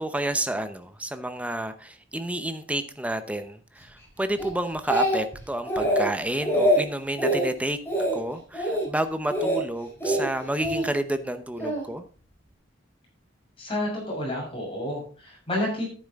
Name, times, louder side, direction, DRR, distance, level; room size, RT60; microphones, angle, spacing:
voice 1, 0.0-7.8 8.1-12.0, right 1 dB, 5° right, 10 dB, 0.8 m, -30 dB
Speech, 4.4-5.4 5.7-6.1 6.4-6.8 7.2-7.5 7.9-8.2 8.5-8.9 9.3-9.6 10.0-10.8 11.6-11.8, equal, 10° left, 4.3 m, -24 dB
voice 2, 13.6-15.8, left 1 dB, 30° left, -2 dB, 6.8 m, -30 dB
11.0 x 9.6 x 3.6 m, 0.40 s
head